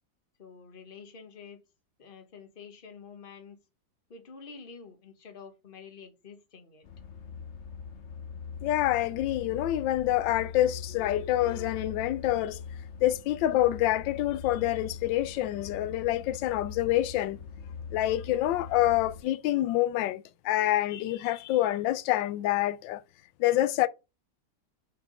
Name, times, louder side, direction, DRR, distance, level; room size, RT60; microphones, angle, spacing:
voice 1, 0.4-1.6 2.0-3.6 4.1-6.9, left 5 dB, 30° left, 1.3 m, -48 dB
sound 1, 6.8-19.2, left 6 dB, 50° left, 0.9 m, -42 dB
voice 2, 8.6-12.6 13.0-17.4 17.9-23.0 23.4-23.9, left 14 dB, 90° left, 1.3 m, -27 dB
5.8 x 4.8 x 5.4 m
omnidirectional pair, 2.0 m